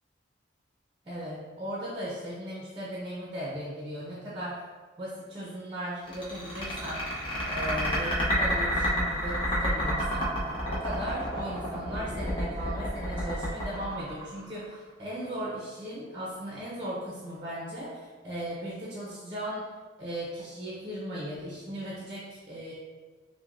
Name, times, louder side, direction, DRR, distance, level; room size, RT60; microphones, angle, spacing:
voice 1, 1.1-4.6 5.0-7.0 7.5-10.3 10.7-19.7 20.0-22.7, equal, 25° right, -6 dB, 0.7 m, -37 dB
sound 1, 6.1-14.7, equal, 25° left, 0.8 m, -30 dB
6.0 x 2.2 x 2.5 m, 1.4 s
head